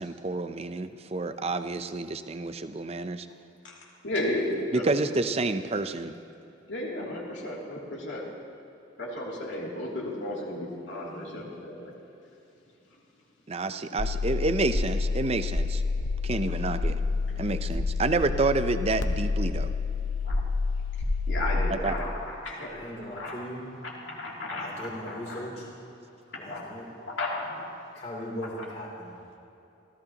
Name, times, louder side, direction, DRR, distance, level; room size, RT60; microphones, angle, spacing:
voice 1, 0.0-3.3 4.7-6.2 13.5-15.8 16.2-17.0 17.4-19.7 21.7-21.9 28.3-28.4, right 3 dB, 30° right, 10 dB, 0.6 m, -29 dB
voice 2, 4.0-4.8 6.7-8.2 9.0-11.9 16.5-16.6 20.2-20.4 21.3-22.7 23.0-23.5 23.8-25.5 26.3-26.7 27.0-27.7 28.5-28.7, left 1 dB, 70° left, -4 dB, 2.8 m, -34 dB
sound 1, 14.0-21.7, left 4 dB, 90° left, 0.8 m, -28 dB
voice 3, 22.7-23.6 24.6-25.6 26.4-26.8 27.9-29.1, equal, 35° left, -4 dB, 3.1 m, -38 dB
26.5 x 14.5 x 2.9 m, 2.9 s
head